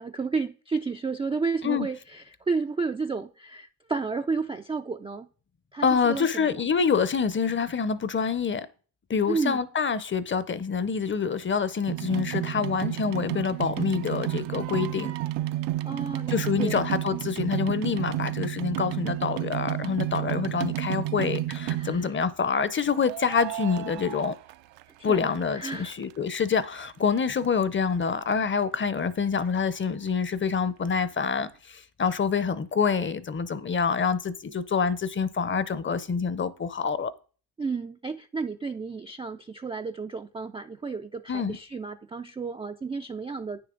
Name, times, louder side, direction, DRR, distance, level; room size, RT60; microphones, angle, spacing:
voice 1, 0.0-5.3 5.7-6.5 9.3-9.6 15.8-16.8 21.7-22.1 25.0-26.0 37.6-43.6, right 4 dB, 15° right, 0.3 m, -32 dB
voice 2, 5.8-8.7 9.1-15.1 16.3-24.3 25.0-37.1 41.3-41.6, left 6 dB, 25° left, 0.6 m, -26 dB
sound 1, 11.9-22.2 23.0-25.1 25.4-26.4 26.9-27.0 27.2-27.3 27.4-27.5 28.0-28.1 28.3-28.4, right 15 dB, 70° right, 0.6 m, -31 dB
9.1 x 6.9 x 3.8 m
supercardioid pair, 75°, 45 cm